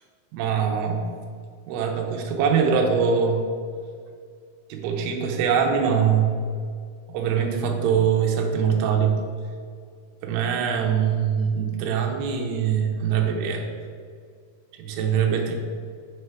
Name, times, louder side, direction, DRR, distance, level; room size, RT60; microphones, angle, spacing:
voice 1, 0.3-1.1 1.7-3.4 4.7-6.4 7.1-9.2 10.2-13.7 14.8-15.5, right 7 dB, 85° right, 2 dB, 2.6 m, -23 dB
6.5 x 3.4 x 4.5 m, 2.1 s
omnidirectional pair, 4.6 m